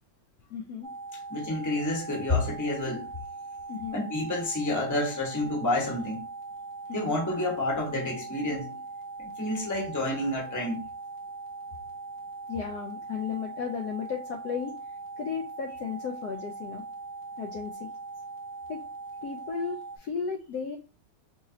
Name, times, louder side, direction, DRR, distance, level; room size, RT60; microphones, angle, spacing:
voice 1, 0.5-0.9 3.7-4.0 6.9-7.2 12.5-14.7 15.2-16.8 17.4-17.9 18.7-18.8 19.2-20.8, left 6 dB, 70° left, 0.9 m, -34 dB
sound 1, 0.8-20.0, right 3 dB, 60° right, 0.4 m, -41 dB
voice 2, 1.3-3.1 3.9-6.2 6.9-8.7 9.2-10.8, left 2 dB, 15° left, 0.8 m, -29 dB
4.9 x 3.0 x 2.7 m
omnidirectional pair, 2.2 m